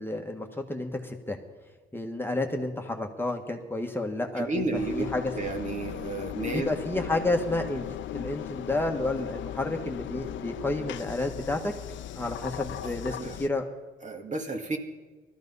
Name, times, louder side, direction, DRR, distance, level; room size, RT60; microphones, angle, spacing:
voice 1, 0.0-1.4 1.9-4.5 4.9-5.2 6.5-7.9 8.1-11.7 12.1-13.6, left 2 dB, 10° left, 3 dB, 1.4 m, -30 dB
voice 2, 4.4-7.1 12.6-13.4 14.0-14.8, right 3 dB, 40° right, 4 dB, 1.9 m, -33 dB
Engine, 4.7-13.5, left 12 dB, 70° left, 0.6 m, -38 dB
18.0 x 13.5 x 5.5 m, 1.3 s
cardioid pair, 90°, 20 cm